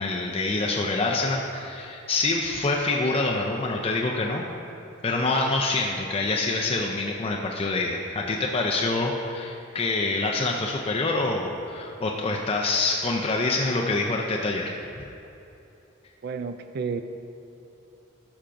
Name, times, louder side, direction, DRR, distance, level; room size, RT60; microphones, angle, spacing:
voice 1, 0.0-4.4 5.0-14.7, left 3 dB, 30° left, -1 dB, 0.4 m, -26 dB
voice 2, 16.2-17.0, right 5 dB, 50° right, 9 dB, 0.3 m, -31 dB
13.0 x 5.7 x 2.6 m, 2.8 s
head